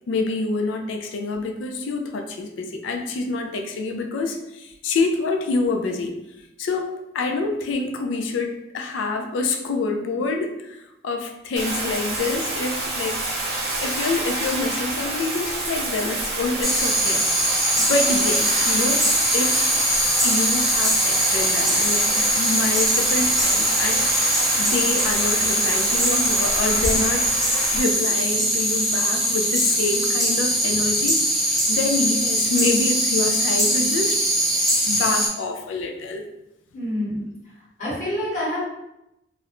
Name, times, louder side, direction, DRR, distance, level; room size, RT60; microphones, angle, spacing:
voice 1, 0.1-6.1 6.6-13.2 13.8-19.1 19.3-19.7 20.2-27.3 27.7-34.5 34.8-36.2, left 3 dB, 80° left, 4 dB, 0.4 m, -27 dB
Bathtub (filling or washing), 11.6-27.8, right 2 dB, 55° right, 0.6 m, -28 dB
sound 1, 16.6-35.3, equal, ahead, 0.4 m, -21 dB
voice 2, 36.7-37.5 37.8-38.6, left 1 dB, 40° left, -9 dB, 1.2 m, -27 dB
2.4 x 2.0 x 2.9 m, 0.87 s
head